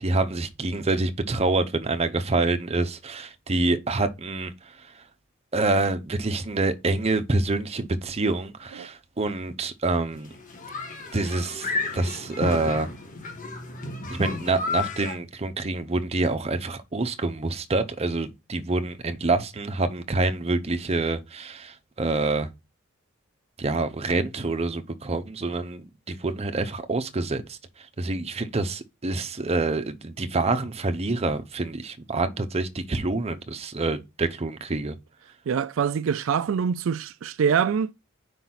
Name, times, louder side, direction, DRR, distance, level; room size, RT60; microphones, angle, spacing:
voice 1, 0.0-5.0 5.5-10.3 11.1-12.9 14.1-22.5 23.6-35.0, right 2 dB, 30° right, 0.7 m, -27 dB
sound 1, 10.1-15.1, left 3 dB, 40° left, 1.4 m, -32 dB
voice 2, 35.5-37.9, right 7 dB, 70° right, 0.4 m, -24 dB
5.1 x 3.9 x 5.8 m
head